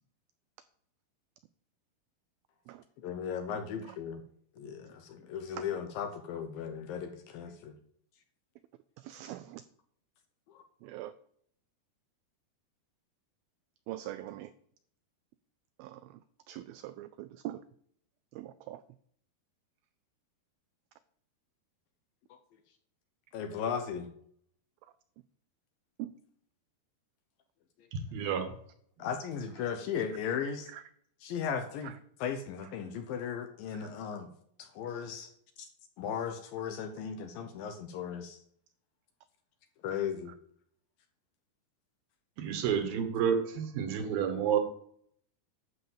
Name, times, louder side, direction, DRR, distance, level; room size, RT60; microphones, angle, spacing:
voice 1, 3.0-4.2 4.6-7.8 10.5-10.6 23.3-24.1 27.8-27.9 29.0-30.7 31.2-31.9 32.2-34.3 34.6-35.3 35.6-35.7 36.0-38.4 39.8-40.3, left 7 dB, 75° left, 6 dB, 2.3 m, -36 dB
voice 2, 9.0-9.6 10.8-11.1 13.9-14.5 15.8-16.2 16.5-17.6 18.3-18.8 26.0-26.1 30.7-30.8 31.8-31.9 33.7-33.9, right 14 dB, 85° right, 13 dB, 2.1 m, -42 dB
voice 3, 27.9-28.5 42.4-44.6, right 7 dB, 70° right, 7 dB, 2.8 m, -30 dB
11.5 x 5.4 x 7.2 m, 0.64 s
omnidirectional pair, 4.7 m